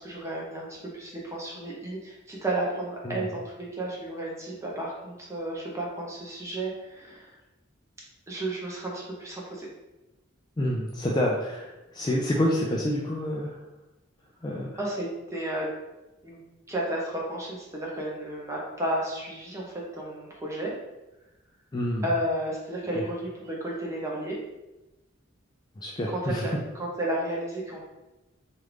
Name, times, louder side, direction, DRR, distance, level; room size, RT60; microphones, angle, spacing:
voice 1, 0.0-7.3 8.3-9.7 14.8-15.7 16.2-16.4 16.7-20.7 22.0-24.4 26.1-27.8, right 1 dB, 15° right, -3 dB, 0.7 m, -32 dB
voice 2, 10.6-11.7 11.9-13.5 14.4-14.7 21.7-22.0 22.9-23.0 25.8-26.4, left 1 dB, 20° left, -2 dB, 0.3 m, -27 dB
3.1 x 2.5 x 3.3 m, 1.0 s
head